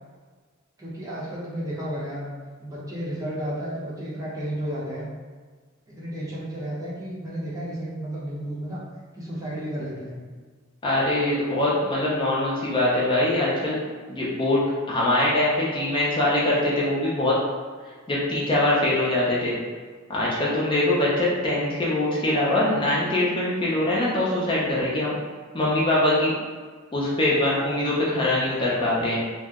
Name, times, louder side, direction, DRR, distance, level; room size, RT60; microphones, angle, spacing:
voice 1, 0.8-2.3 2.6-5.1 5.9-8.8 9.1-10.2, equal, 15° right, -7 dB, 0.6 m, -32 dB
voice 2, 10.8-13.8 14.1-14.6 14.9-17.4 18.1-19.6 20.1-25.1 25.5-26.3 26.9-29.2, left 1 dB, 25° left, -6 dB, 0.5 m, -23 dB
2.7 x 2.0 x 3.5 m, 1.5 s
head